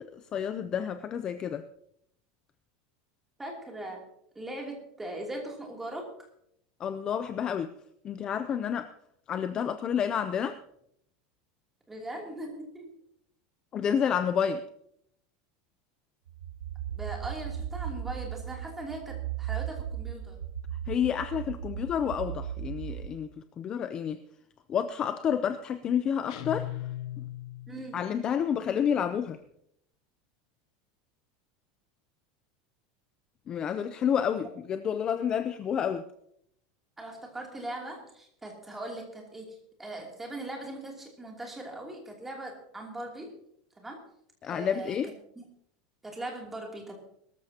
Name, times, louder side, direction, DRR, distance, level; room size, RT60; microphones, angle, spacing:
voice 1, 0.0-1.6 6.8-7.7 8.0-8.9 9.3-10.6 13.7-14.7 20.9-23.3 23.6-24.2 24.7-26.7 27.9-29.4 33.5-36.0 44.4-45.1, left 8 dB, 20° left, 10 dB, 0.5 m, -29 dB
voice 2, 3.4-4.1 4.3-6.3 11.9-13.0 16.9-20.4 27.7-28.0 37.0-43.4 43.8-44.0 44.5-45.0 45.4-45.5 46.0-47.0, right 1 dB, 5° right, 0 dB, 2.9 m, -40 dB
sound 1, 16.3-23.1, right 10 dB, 90° right, 1.1 m, -37 dB
sound 2, 26.3-28.0, left 15 dB, 65° left, 0.8 m, -38 dB
22.5 x 13.5 x 2.9 m, 0.73 s
supercardioid pair, 175°, 4 cm